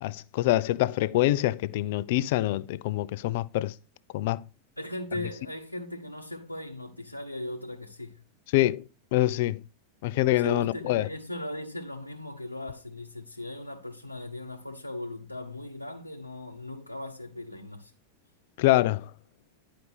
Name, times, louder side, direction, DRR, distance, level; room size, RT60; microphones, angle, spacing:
voice 1, 0.0-3.7 4.1-4.4 8.5-8.8 9.1-9.6 10.0-11.1 18.6-19.0, left 16 dB, 50° left, 0.5 m, -25 dB
voice 2, 4.8-8.2 10.3-17.9, left 1 dB, 85° left, 1.0 m, -38 dB
11.0 x 5.1 x 5.9 m
figure-of-eight pair, 90°, 0 cm